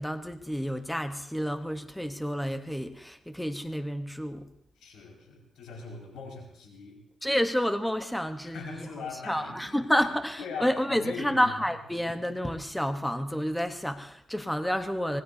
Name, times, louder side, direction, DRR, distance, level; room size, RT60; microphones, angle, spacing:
voice 1, 0.0-4.5 7.2-8.9 9.3-15.2, equal, 5° left, 7 dB, 1.0 m, -29 dB
voice 2, 4.8-7.0 8.4-10.1 10.4-11.5, left 5 dB, 90° left, 0 dB, 5.1 m, -41 dB
25.0 x 20.0 x 2.7 m, 0.77 s
cardioid pair, 85°, 0 cm